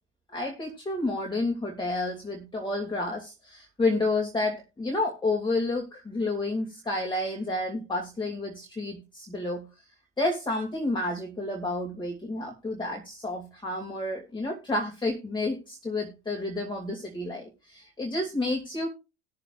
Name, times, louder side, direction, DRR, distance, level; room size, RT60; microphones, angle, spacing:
voice 1, 0.3-9.7 10.2-18.9, left 2 dB, 15° left, 1 dB, 2.3 m, -30 dB
20.0 x 6.9 x 2.4 m, 0.29 s
hypercardioid pair, 70°, 34 cm